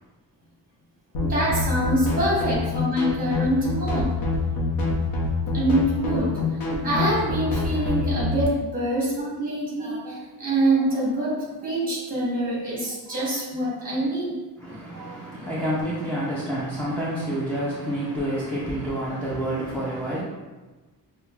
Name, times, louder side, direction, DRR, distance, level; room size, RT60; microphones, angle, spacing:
sound 1, 1.1-8.5, left 3 dB, 65° left, 0.8 m, -26 dB
voice 1, 1.2-4.1 5.5-14.3 14.7-15.2, right 1 dB, 20° right, -5 dB, 1.1 m, -25 dB
voice 2, 14.6-20.2, right 1 dB, 5° left, -8 dB, 0.3 m, -28 dB
5.3 x 2.2 x 2.3 m, 1.2 s
cardioid pair, 175°, 38 cm